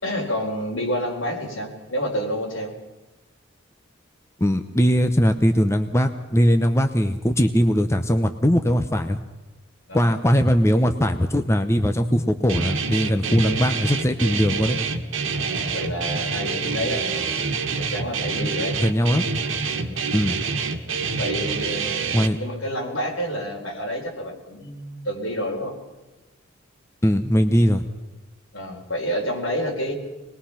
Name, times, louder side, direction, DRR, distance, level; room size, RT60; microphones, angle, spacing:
voice 1, 0.0-2.7 9.9-10.1 15.3-17.3 17.8-18.8 19.7-20.0 21.2-25.8 28.5-29.9, equal, 70° left, 1 dB, 4.6 m, -29 dB
voice 2, 4.4-9.2 9.9-14.8 18.8-19.3 20.1-20.4 22.1-22.4 27.0-27.8, equal, 15° left, 6 dB, 0.9 m, -20 dB
Guitar, 12.5-22.3, right 4 dB, 75° right, 1.8 m, -27 dB
24.5 x 20.5 x 5.8 m, 1.2 s
head